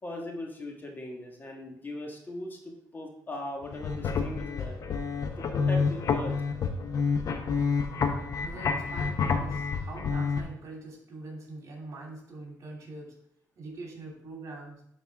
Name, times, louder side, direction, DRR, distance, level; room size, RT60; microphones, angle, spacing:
voice 1, 0.0-4.7 5.4-6.3, left 1 dB, 30° left, 1 dB, 1.6 m, -39 dB
sound 1, 3.6-10.4, left 5 dB, 55° left, 0.9 m, -29 dB
voice 2, 7.7-13.1 13.6-14.8, right 2 dB, 50° right, -1 dB, 2.7 m, -43 dB
9.9 x 4.2 x 3.6 m, 0.72 s
cardioid pair, 90°, 7 cm